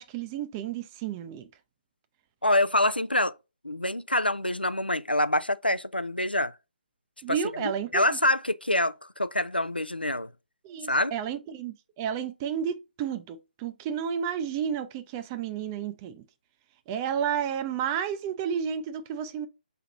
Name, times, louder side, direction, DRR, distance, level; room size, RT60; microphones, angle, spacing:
voice 1, 0.0-1.5 7.2-8.2 10.6-16.2 16.9-19.5, right 8 dB, 20° right, 0.5 m, -32 dB
voice 2, 2.4-3.3 3.6-6.5 7.3-10.3 10.9-11.1, left 1 dB, 90° left, 0.4 m, -26 dB
5.6 x 3.3 x 2.5 m
figure-of-eight pair, 140°, 5 cm